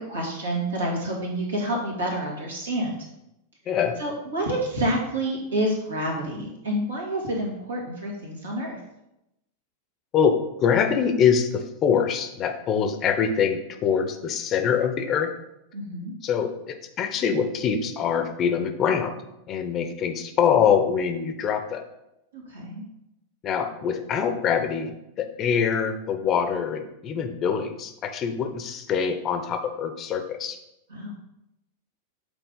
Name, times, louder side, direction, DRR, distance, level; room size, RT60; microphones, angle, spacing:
voice 1, 0.0-3.0 4.0-8.8 15.7-16.1 22.3-22.8 30.9-31.1, right 1 dB, 70° right, -2 dB, 2.0 m, -28 dB
voice 2, 3.7-4.0 10.1-15.3 16.2-19.1 19.5-21.8 23.4-24.9 25.2-30.6, left 7 dB, 30° left, 6 dB, 0.7 m, -24 dB
8.1 x 4.1 x 3.8 m, 0.86 s
figure-of-eight pair, 90°, 0 cm